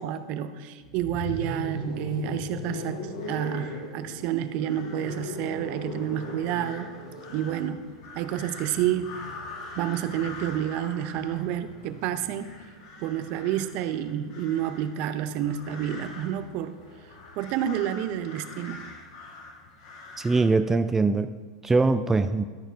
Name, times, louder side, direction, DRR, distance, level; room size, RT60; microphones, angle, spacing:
voice 1, 0.0-6.9 7.3-7.9 8.2-9.2 9.8-12.5 13.0-16.8 17.4-18.8, right 10 dB, 55° right, 10 dB, 0.6 m, -29 dB
sound 1, 0.8-12.8 14.0-17.6, left 1 dB, 85° left, 1.4 m, -40 dB
sound 2, 3.0-20.4, left 3 dB, 60° left, 1.8 m, -46 dB
voice 2, 20.2-21.3 21.6-22.4, right 3 dB, 10° right, 10 dB, 0.3 m, -22 dB
12.5 x 4.4 x 4.6 m, 1.5 s
hypercardioid pair, 100°, 3 cm